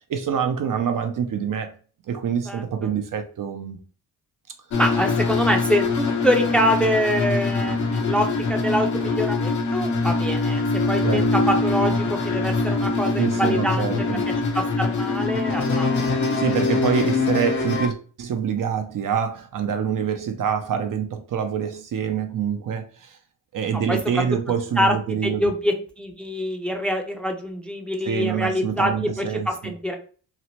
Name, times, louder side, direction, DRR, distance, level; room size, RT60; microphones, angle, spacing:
voice 1, 0.1-1.7 2.1-3.8 11.0-11.3 13.2-14.3 16.4-23.2 23.5-25.5 28.1-29.7, right 7 dB, 55° right, 0.5 m, -26 dB
sound 1, 4.7-17.9, left 3 dB, 45° left, 0.7 m, -23 dB
voice 2, 4.8-13.9 14.5-16.1 23.9-24.0 24.8-24.9 25.2-30.0, equal, 5° left, 0.5 m, -25 dB
3.0 x 2.0 x 2.8 m
cardioid pair, 65°, 41 cm